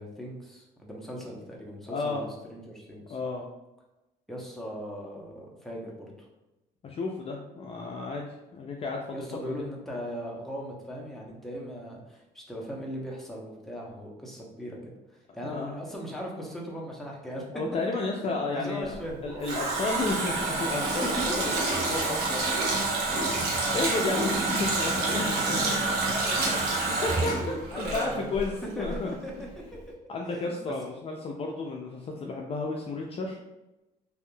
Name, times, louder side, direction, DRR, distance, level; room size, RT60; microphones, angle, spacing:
voice 1, 0.0-3.2 4.3-6.1 9.1-17.4 18.5-19.2 23.3-23.9 26.1-28.3 28.8-29.3 30.3-30.7, equal, ahead, -2 dB, 0.7 m, -39 dB
voice 2, 1.9-2.3 3.1-3.5 6.8-8.3 8.5-9.5 15.5-15.8 17.5-18.9 19.2-23.1 23.7-25.9 27.0-29.1 30.1-33.4, left 3 dB, 35° left, 0 dB, 0.4 m, -32 dB
Water tap faucet, 19.0-28.6 28.8-29.0, right 2 dB, 65° right, 0.9 m, -28 dB
3.4 x 2.6 x 2.2 m, 0.98 s
cardioid pair, 110°, 17 cm